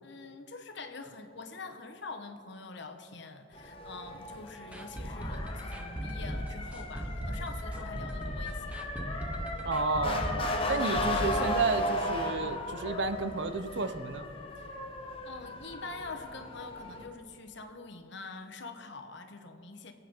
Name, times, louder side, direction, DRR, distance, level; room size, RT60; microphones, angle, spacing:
voice 1, 0.0-8.9 14.6-14.9 15.2-19.9, left 3 dB, 60° left, 7 dB, 1.1 m, -45 dB
Motor vehicle (road) / Siren, 3.5-17.0, left 1 dB, 25° left, 1.2 m, -36 dB
sound 1, 4.7-12.5 12.7-12.8 13.2-13.3, equal, 5° right, 0.9 m, -37 dB
voice 2, 9.6-10.3 10.7-14.3, right 2 dB, 60° right, 10 dB, 0.7 m, -32 dB
23.5 x 8.2 x 4.5 m, 2.3 s
head